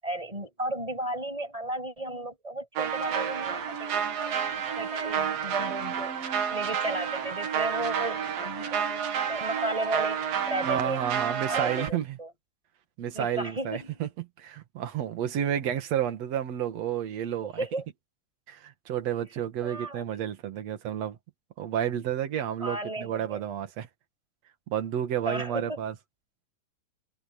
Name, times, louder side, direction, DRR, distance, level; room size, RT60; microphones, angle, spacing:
voice 1, 0.0-6.1 6.5-11.0 11.5-12.3 13.1-14.0 17.4-17.8 19.6-20.0 22.6-23.4 25.2-25.9, right 1 dB, 10° right, 6.6 m, -34 dB
sound 1, 2.8-11.9, right 7 dB, 90° right, 4.2 m, -30 dB
voice 2, 10.6-12.2 13.0-14.1 14.4-17.7 18.5-21.2 21.6-23.9 24.7-25.9, right 10 dB, 55° right, 2.7 m, -31 dB
omnidirectional pair, 3.9 m